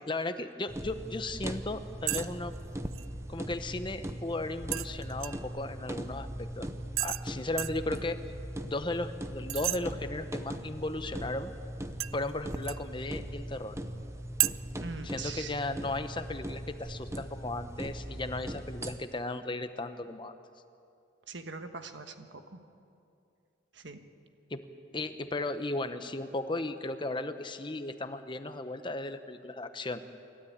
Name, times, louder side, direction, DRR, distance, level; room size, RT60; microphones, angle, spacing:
voice 1, 0.1-2.5 3.3-6.7 7.0-8.2 8.6-11.5 12.1-13.8 15.0-20.3 24.5-24.6 24.9-30.0, left 2 dB, 25° left, 10 dB, 0.8 m, -35 dB
sound 1, 0.7-19.0, equal, 15° right, 0.8 m, -40 dB
sound 2, 2.1-2.3 2.5-3.1 4.7-5.5 7.0-7.3 7.6-7.8 9.5-9.8 12.0-12.9 14.4-14.5, right 16 dB, 85° right, 0.4 m, -32 dB
voice 2, 14.8-15.5 21.3-22.6 23.7-24.0, right 4 dB, 60° right, 7 dB, 1.4 m, -42 dB
28.0 x 13.0 x 8.7 m, 2.6 s
head